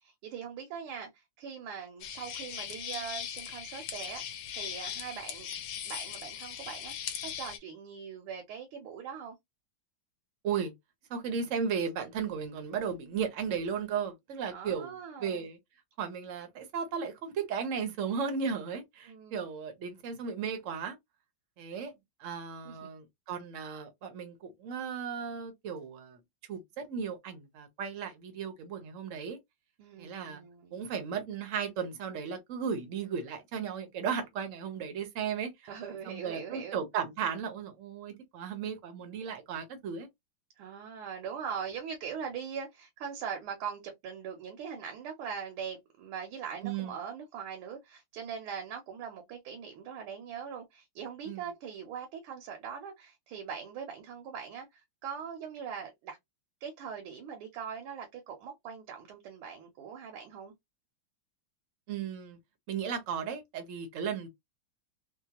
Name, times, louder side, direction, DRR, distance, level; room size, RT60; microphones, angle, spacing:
voice 1, 0.2-5.5 5.9-9.4 14.5-15.5 19.1-19.4 22.6-22.9 29.8-30.8 35.6-36.8 40.6-56.2 56.6-60.5, right 7 dB, 80° right, 1.6 m, -41 dB
sound 1, 2.0-7.6, left 9 dB, 70° left, 1.2 m, -39 dB
voice 2, 11.1-15.6 16.0-21.0 21.6-21.9 22.2-26.2 26.5-29.4 30.0-30.4 30.7-35.5 36.0-40.1 46.6-47.0 51.3-51.4 61.9-62.4 62.7-64.3, right 6 dB, 60° right, 0.8 m, -35 dB
3.7 x 2.1 x 2.8 m
omnidirectional pair, 2.3 m